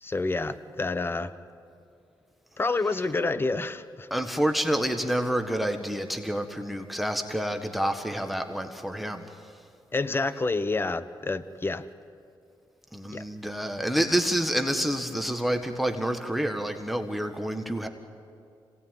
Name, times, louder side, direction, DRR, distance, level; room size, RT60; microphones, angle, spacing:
voice 1, 0.0-1.3 2.6-4.1 9.9-11.9 13.1-13.2, left 3 dB, 25° left, 13 dB, 1.0 m, -28 dB
voice 2, 4.1-9.3 12.9-17.9, equal, ahead, 6 dB, 1.6 m, -28 dB
26.0 x 18.0 x 9.3 m, 2.5 s
cardioid pair, 80°, 8 cm